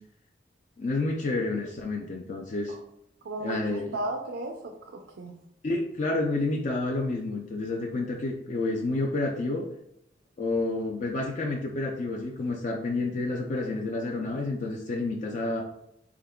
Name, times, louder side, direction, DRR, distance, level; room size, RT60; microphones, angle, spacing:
voice 1, 0.8-2.7 3.4-3.9 5.6-9.7 10.4-15.6, left 2 dB, 40° left, 0 dB, 0.4 m, -29 dB
voice 2, 3.2-5.3, right 2 dB, 75° right, 3 dB, 0.4 m, -35 dB
3.6 x 3.5 x 2.2 m, 0.76 s
head